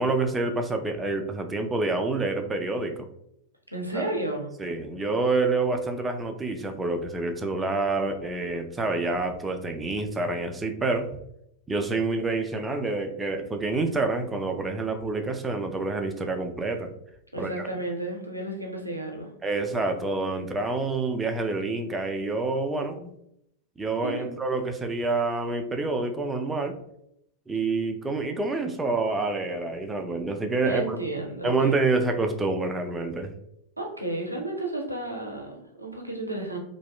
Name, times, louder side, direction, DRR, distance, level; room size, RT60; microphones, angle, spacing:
voice 1, 0.0-3.1 3.9-4.1 4.6-11.2 11.7-16.9 17.4-17.6 19.4-23.1 23.8-26.7 27.5-31.0 31.4-33.3, right 3 dB, 15° right, 5 dB, 0.3 m, -27 dB
voice 2, 3.7-4.5 17.3-19.3 24.0-24.3 30.7-31.8 33.8-36.6, right 2 dB, 85° right, 0 dB, 0.5 m, -32 dB
2.6 x 2.3 x 2.2 m, 0.76 s
figure-of-eight pair, 90°, 0 cm